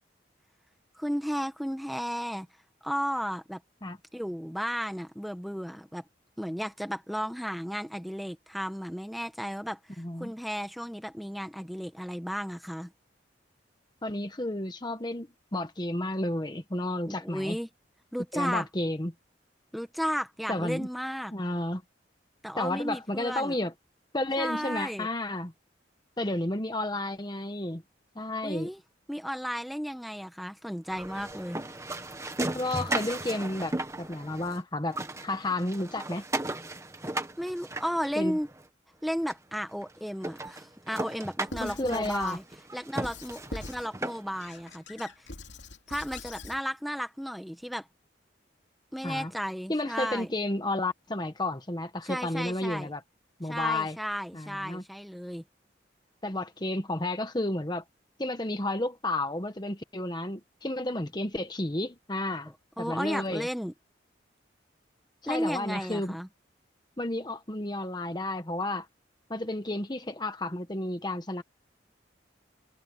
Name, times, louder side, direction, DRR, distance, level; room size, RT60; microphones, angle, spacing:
voice 1, 0.9-2.5 2.8-3.6 4.1-6.0 6.4-12.9 17.1-17.7 18.1-18.7 19.7-21.3 22.4-23.6 24.4-25.1 28.4-28.8 29.1-31.6 37.4-38.5 39.0-42.4 42.7-45.1 45.9-47.9 48.9-50.3 52.0-52.9 53.4-55.4 62.8-63.7 65.3-66.3, equal, ahead, 1.4 m, -34 dB
voice 2, 10.0-10.3 14.0-17.6 18.3-19.1 20.5-20.9 21.3-21.8 22.6-23.7 24.1-25.5 26.2-27.8 28.1-28.7 32.5-36.2 38.2-38.4 41.6-42.4 49.0-49.3 49.7-53.0 53.4-54.0 54.3-54.8 56.2-57.8 58.2-62.5 62.8-63.5 65.2-66.2 67.0-68.9 69.3-71.4, left 1 dB, 25° left, 1.2 m, -32 dB
sound 1, 30.9-34.6 34.9-38.6 39.3-39.4 39.8-39.9 40.2-44.5, right 2 dB, 15° right, 1.4 m, -36 dB
Squeak / Writing, 41.5-42.4 43.0-43.9 44.4-46.6, left 2 dB, 75° left, 2.9 m, -43 dB
head